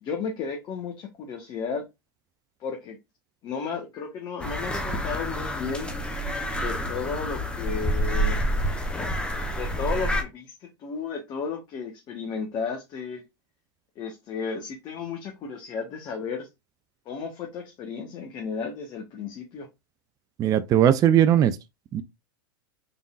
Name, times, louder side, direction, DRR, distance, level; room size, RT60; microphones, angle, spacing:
voice 1, 0.0-1.9 2.6-3.0 3.4-5.9 6.5-8.4 9.5-13.2 14.0-16.5 17.1-19.7, left 5 dB, 35° left, 1.1 m, -33 dB
sound 1, 4.4-10.2, equal, 10° left, 0.8 m, -28 dB
voice 2, 20.4-21.6 21.9-22.0, right 10 dB, 30° right, 0.4 m, -19 dB
4.0 x 3.5 x 2.4 m
hypercardioid pair, 100°, 12 cm